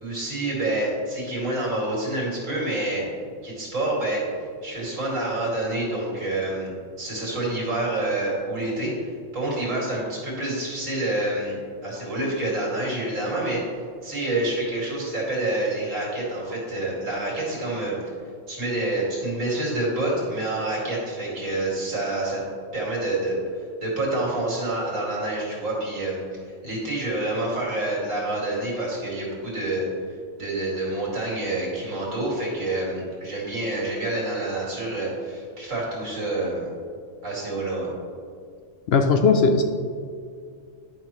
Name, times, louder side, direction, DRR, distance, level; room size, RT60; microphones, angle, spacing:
voice 1, 0.0-3.0 3.4-4.2 4.6-6.7 7.0-8.9 9.3-13.6 14.0-18.0 18.5-22.4 22.7-29.9 30.4-36.7 37.2-37.9, right 2 dB, 80° right, -5 dB, 2.7 m, -27 dB
voice 2, 38.9-39.6, left 4 dB, 65° left, 6 dB, 0.7 m, -18 dB
11.0 x 5.7 x 3.1 m, 2.1 s
omnidirectional pair, 1.3 m